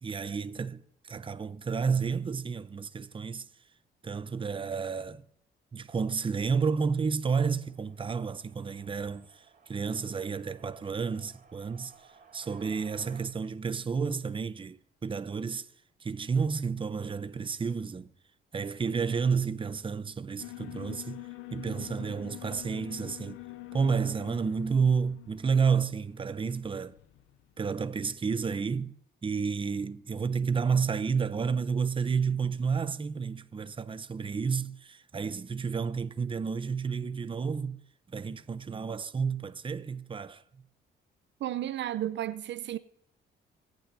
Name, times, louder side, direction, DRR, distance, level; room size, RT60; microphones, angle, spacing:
voice 1, 0.0-3.5 4.0-5.2 5.7-15.7 16.0-18.1 18.5-21.2 21.5-23.4 23.7-27.0 27.6-28.9 29.2-37.8 38.1-40.4, right 5 dB, 25° right, 0.7 m, -31 dB
sound 1, 7.4-13.2, right 5 dB, 45° right, 3.4 m, -58 dB
Alarm, 20.4-27.5, left 18 dB, 85° left, 0.6 m, -46 dB
voice 2, 41.4-42.8, right 12 dB, 65° right, 0.6 m, -33 dB
24.0 x 9.1 x 2.7 m
cardioid pair, 90°, 20 cm